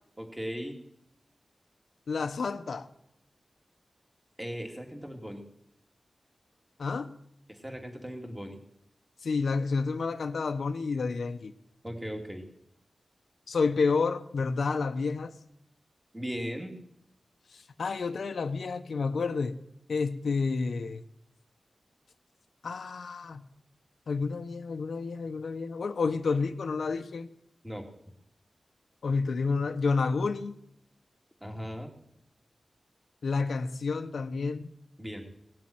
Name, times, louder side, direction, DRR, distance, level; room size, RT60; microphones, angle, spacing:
voice 1, 0.2-0.8 4.4-5.4 7.5-8.6 11.8-12.5 16.1-16.7 27.6-27.9 31.4-31.9 35.0-35.3, equal, 10° right, 2 dB, 2.6 m, -38 dB
voice 2, 2.1-2.9 6.8-7.1 9.2-11.5 13.5-15.3 17.8-19.6 19.9-21.0 22.6-23.4 24.1-27.3 29.0-30.5 33.2-34.7, left 4 dB, 85° left, 8 dB, 0.9 m, -29 dB
18.0 x 7.6 x 8.8 m, 0.74 s
wide cardioid pair, 125°, 0 cm